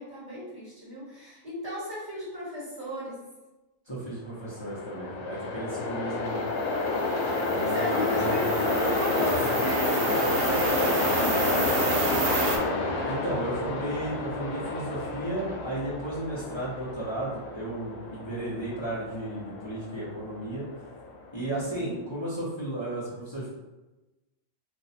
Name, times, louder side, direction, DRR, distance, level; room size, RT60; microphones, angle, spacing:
voice 1, 0.0-3.2 7.7-12.8 18.4-18.5 21.8-21.9, equal, 30° right, -10 dB, 1.4 m, -36 dB
voice 2, 3.9-6.5 7.5-8.6 13.0-20.6 21.3-23.5, right 1 dB, 25° left, -9 dB, 0.7 m, -34 dB
Train, 4.4-21.6, left 3 dB, 90° left, 1.0 m, -30 dB
sound 1, 6.6-12.6, right 2 dB, 60° right, 0.7 m, -30 dB
2.6 x 2.3 x 4.0 m, 1.1 s
omnidirectional pair, 1.4 m